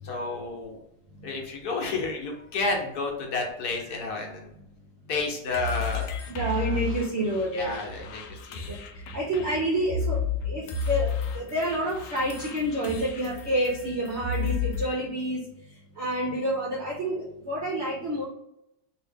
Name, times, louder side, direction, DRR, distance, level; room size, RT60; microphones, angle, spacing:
voice 1, 0.0-0.8 1.2-4.5 5.1-6.1 7.5-8.7, left 3 dB, 65° left, 1 dB, 1.2 m, -31 dB
sound 1, 5.5-14.9, left 5 dB, 85° left, 0.7 m, -32 dB
voice 2, 6.3-7.8 8.7-8.8 9.1-15.4 16.0-18.2, right 1 dB, 65° right, -3 dB, 0.6 m, -28 dB
2.8 x 2.7 x 3.4 m, 0.83 s
omnidirectional pair, 1.9 m